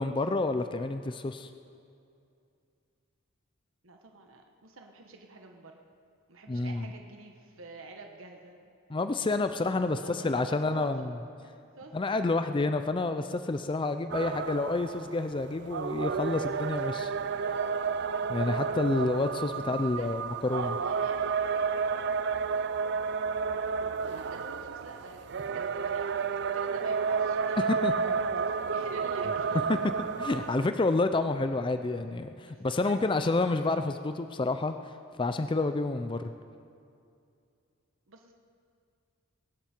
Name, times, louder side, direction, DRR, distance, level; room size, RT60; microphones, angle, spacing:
voice 1, 0.0-1.5 6.5-6.9 8.9-10.0 10.2-11.1 11.9-17.1 18.3-20.8 27.8-27.9 29.5-29.6 30.2-34.7 35.2-36.3, left 2 dB, 25° left, 9 dB, 0.4 m, -29 dB
voice 2, 3.8-5.8 6.3-8.7 9.9-11.9 19.5-21.3 24.1-26.3 26.5-29.8 32.5-33.0 38.1-38.3, right 3 dB, 70° right, 3 dB, 1.3 m, -48 dB
sound 1, 14.1-30.7, right 5 dB, 55° right, 0.4 m, -31 dB
22.0 x 12.0 x 4.5 m, 2.4 s
head